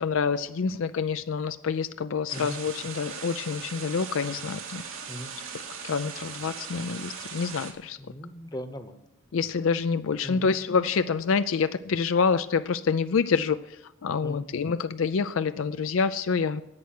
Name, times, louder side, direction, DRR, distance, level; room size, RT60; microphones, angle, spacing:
voice 1, 0.0-4.8 5.8-8.0 9.3-16.6, left 5 dB, 70° left, 12 dB, 0.4 m, -27 dB
sound 1, 2.3-7.7, right 6 dB, 90° right, 2.2 m, -39 dB
voice 2, 8.0-9.0 10.2-10.5 14.2-14.5, equal, 20° left, 9 dB, 1.0 m, -39 dB
11.0 x 8.2 x 9.4 m, 0.87 s
head